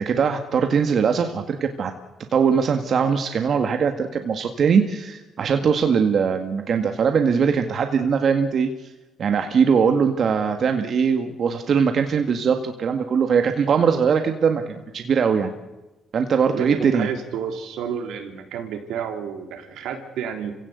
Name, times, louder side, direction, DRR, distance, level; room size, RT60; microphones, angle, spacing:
voice 1, 0.0-1.9 2.3-8.7 9.2-15.5 16.1-17.1, right 6 dB, 55° right, 6 dB, 1.9 m, -21 dB
voice 2, 16.5-20.6, right 7 dB, 85° right, 5 dB, 3.5 m, -30 dB
29.0 x 17.0 x 8.2 m, 1.1 s
cardioid pair, 90°, 0 cm